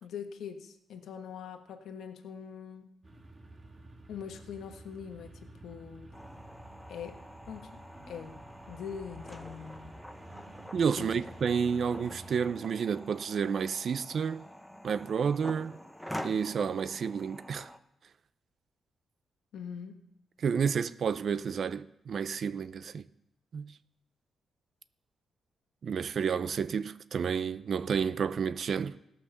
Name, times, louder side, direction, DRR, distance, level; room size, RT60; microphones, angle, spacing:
voice 1, 0.0-2.9 4.1-6.1 6.9-7.2 7.5-7.7 8.1-8.4 8.7-9.9 11.0-11.1 19.5-20.0, left 7 dB, 80° left, 1.3 m, -43 dB
sound 1, 3.0-12.6, right 1 dB, 30° right, 1.6 m, -51 dB
sound 2, 6.1-17.8, equal, 5° left, 0.8 m, -46 dB
voice 2, 10.7-14.5 14.8-15.8 16.2-17.7 20.4-23.0 23.5-23.8 25.8-29.0, right 6 dB, 60° right, 0.5 m, -30 dB
16.5 x 5.9 x 6.7 m
cardioid pair, 90°, 0 cm